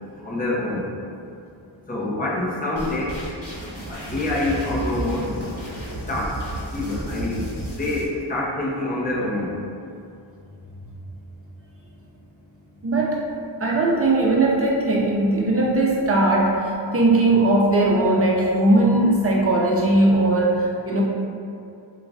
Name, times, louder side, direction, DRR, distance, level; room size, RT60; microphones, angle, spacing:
voice 1, 0.2-0.9 1.9-3.1 3.9-5.3 6.1-6.3 6.7-9.5, left 2 dB, 20° left, -5 dB, 0.7 m, -26 dB
sound 1, 2.8-8.1, right 1 dB, 40° left, 1.3 m, -32 dB
voice 2, 12.8-13.2 13.6-21.0, right 2 dB, 30° right, -3 dB, 0.6 m, -19 dB
3.7 x 2.4 x 3.4 m, 2.5 s
wide cardioid pair, 70°, 47 cm